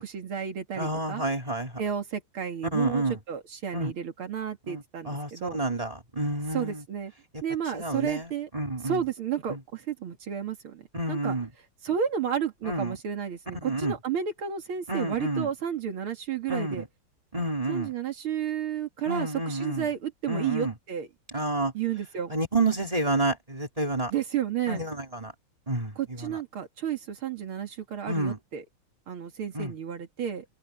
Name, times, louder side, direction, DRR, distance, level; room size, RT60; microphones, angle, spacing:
voice 1, 0.0-1.2 1.8-5.6 6.5-7.1 7.4-8.5 8.8-10.8 11.1-11.4 11.8-16.8 17.7-21.1 21.7-22.3 24.1-24.8 26.0-28.6 29.1-30.4, right 8 dB, 80° right, 2.8 m, -32 dB
voice 2, 0.8-1.7 2.7-3.2 3.7-3.9 4.7-6.8 7.7-9.0 9.5-9.6 10.9-11.5 12.6-12.9 13.5-13.9 14.9-15.5 16.5-16.8 17.3-17.9 19.1-19.9 20.3-20.7 21.3-21.7 22.3-24.1 24.7-25.3 25.7-25.9 26.2-26.4 28.1-28.4 29.5-29.7, right 2 dB, 15° right, 3.4 m, -29 dB
open air
omnidirectional pair, 2.3 m